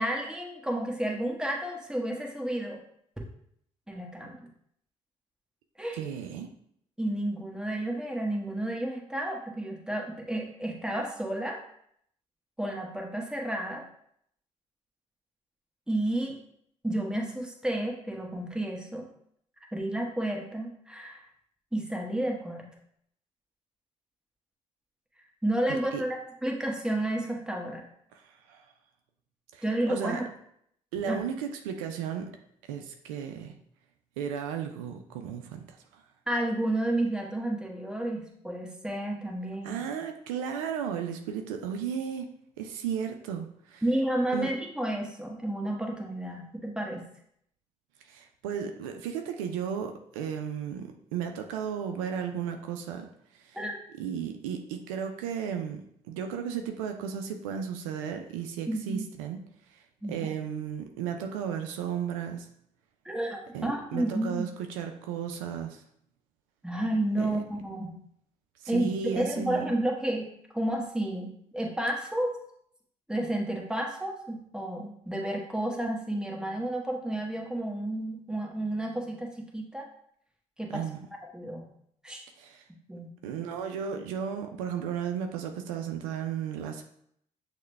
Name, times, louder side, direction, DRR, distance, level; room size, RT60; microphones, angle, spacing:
voice 1, 0.0-2.8 3.9-4.5 5.8-6.0 7.0-11.6 12.6-13.8 15.9-16.4 16.8-19.0 19.7-21.2 21.7-22.7 25.4-27.9 29.6-30.2 31.1-31.2 36.3-39.8 43.8-47.1 53.5-53.8 58.7-59.1 60.0-60.3 63.0-64.5 66.6-67.9 68.7-70.3 70.5-72.3 73.1-79.9 80.6-80.8 81.3-81.6 82.0-82.3 82.9-83.1, right 1 dB, 5° right, 0 dB, 1.2 m, -31 dB
voice 2, 5.9-6.5 25.7-26.0 28.1-28.7 29.5-30.2 30.9-32.3 32.7-33.5 34.2-36.0 39.6-42.3 42.6-43.8 44.3-44.5 48.0-53.1 53.3-53.6 54.0-59.4 59.7-59.8 60.1-62.5 63.5-65.8 67.2-67.3 68.6-69.7 80.7-81.0 82.4-82.6 83.2-86.8, right 7 dB, 85° right, 5 dB, 0.4 m, -34 dB
6.3 x 2.2 x 3.3 m, 0.69 s
hypercardioid pair, 50°, 17 cm